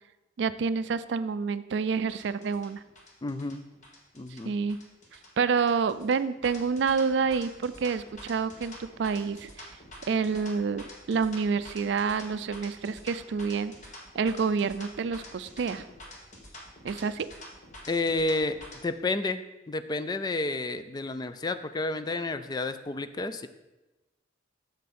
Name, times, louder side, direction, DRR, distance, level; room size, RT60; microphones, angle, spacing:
voice 1, 0.4-2.8 4.3-4.8 5.4-9.8 10.1-13.7 14.1-15.8 16.8-17.3, right 5 dB, 65° right, 13 dB, 0.4 m, -28 dB
sound 1, 2.1-18.8, left 1 dB, 40° left, 1.5 m, -47 dB
voice 2, 3.2-3.6 4.1-4.5 17.9-18.6 18.8-23.5, left 2 dB, 20° left, 11 dB, 0.3 m, -30 dB
8.3 x 6.7 x 4.2 m, 1.0 s
head